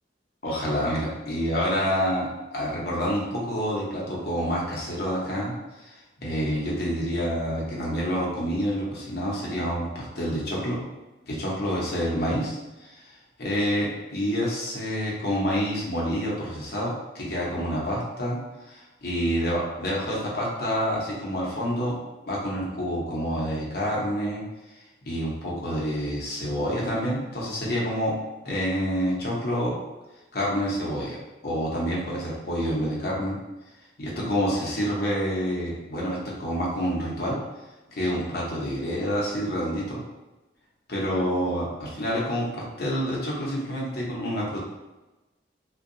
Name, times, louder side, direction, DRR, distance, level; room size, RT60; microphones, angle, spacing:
voice 1, 0.4-5.5 5.8-10.8 11.2-13.0 13.4-13.9 14.1-18.4 18.7-22.0 22.3-24.4 25.0-28.1 28.4-29.7 30.3-31.2 31.4-33.4 34.0-37.4 37.9-40.0 40.9-44.6, equal, 55° left, -4 dB, 0.7 m, -28 dB
2.6 x 2.2 x 2.6 m, 1.1 s
head